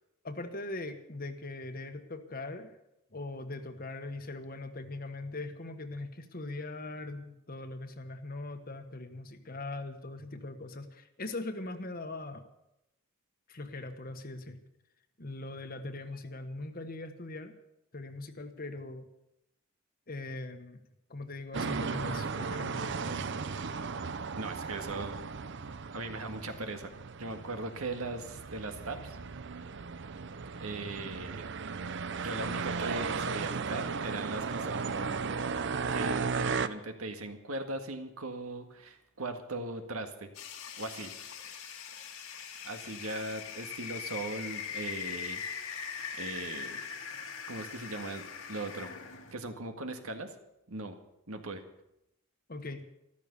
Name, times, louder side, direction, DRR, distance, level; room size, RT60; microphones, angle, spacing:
voice 1, 0.2-2.7 3.1-12.5 13.5-14.6 15.2-17.6 17.9-19.1 20.1-20.8 21.1-23.3 52.5-52.9, left 2 dB, 40° left, 8 dB, 1.3 m, -41 dB
sound 1, 21.5-36.7, right 5 dB, 55° right, 0.6 m, -35 dB
voice 2, 24.3-26.9 27.2-29.2 30.6-31.5 32.2-35.3 35.9-40.3 40.8-41.1 42.6-45.9 46.2-46.8 47.5-48.2 48.5-48.9 49.3-50.3 50.7-50.9 51.3-51.6, right 2 dB, 75° right, 6 dB, 1.8 m, -39 dB
sound 2, 40.3-49.3, left 7 dB, 75° left, 2.0 m, -41 dB
14.0 x 13.0 x 6.9 m, 0.85 s
head